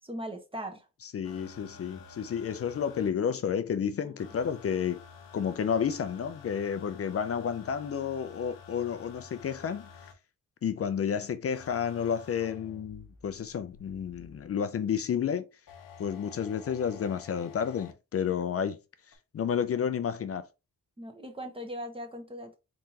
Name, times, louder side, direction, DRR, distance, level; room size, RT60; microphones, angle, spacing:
voice 1, 0.0-0.9 4.0-4.2 21.0-22.6, equal, 15° right, 1.0 m, -39 dB
voice 2, 1.0-5.0 5.3-9.9 10.6-15.5 16.0-18.8 19.3-20.5, left 7 dB, 45° left, 0.5 m, -31 dB
sound 1, 1.2-3.1 4.2-10.1 11.5-14.5 15.7-17.9 19.1-19.2, left 5 dB, 85° left, 0.9 m, -51 dB
3.9 x 3.7 x 2.8 m
cardioid pair, 100°, 33 cm